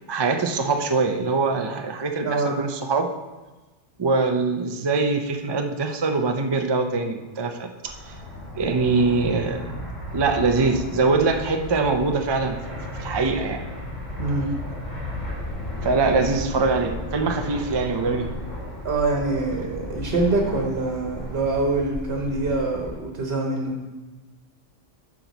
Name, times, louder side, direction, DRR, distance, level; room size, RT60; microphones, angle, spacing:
voice 1, 0.1-3.1 4.0-8.1 8.6-9.6 10.1-12.6 12.9-13.6 15.8-18.3, right 3 dB, 35° right, 4 dB, 0.4 m, -23 dB
voice 2, 2.2-2.6 14.2-14.5 18.8-23.7, right 3 dB, 55° right, 0 dB, 1.3 m, -25 dB
Fixed-wing aircraft airplane, 7.8-23.0, left 1 dB, 85° left, 3.0 m, -34 dB
10.5 x 6.0 x 4.0 m, 1.2 s
omnidirectional pair, 1.3 m